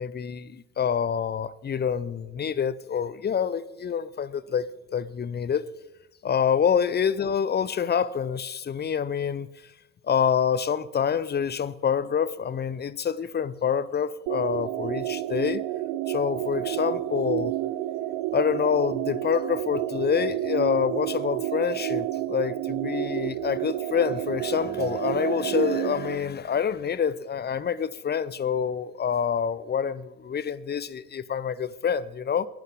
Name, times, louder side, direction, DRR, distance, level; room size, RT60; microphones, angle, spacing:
voice 1, 0.0-4.7 4.9-5.6 6.2-9.5 10.0-15.6 16.1-17.5 18.3-32.5, left 7 dB, 20° left, 0.7 m, -27 dB
sound 1, 14.3-26.1, right 15 dB, 55° right, 1.0 m, -30 dB
29.0 x 11.0 x 3.8 m
figure-of-eight pair, 60°, 47 cm